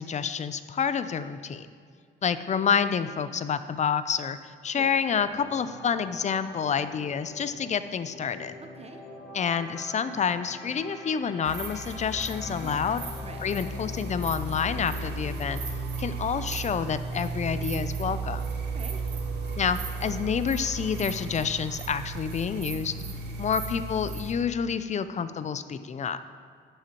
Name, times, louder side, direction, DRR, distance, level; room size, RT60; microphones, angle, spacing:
voice 1, 0.0-1.7 2.2-8.5 9.3-13.0 13.4-15.6 16.0-18.4 19.6-22.9 23.4-26.2, left 7 dB, 35° left, 12 dB, 0.4 m, -28 dB
sound 1, 5.1-19.2 19.5-19.8, left 1 dB, 90° left, 1.6 m, -46 dB
sound 2, 11.4-24.3, right 3 dB, 60° right, 1.3 m, -34 dB
voice 2, 12.5-12.8 13.2-13.4 18.6-19.0 22.9-23.3, right 4 dB, 30° right, 4 dB, 0.7 m, -45 dB
11.0 x 7.4 x 3.0 m, 2.1 s
cardioid pair, 90°, 20 cm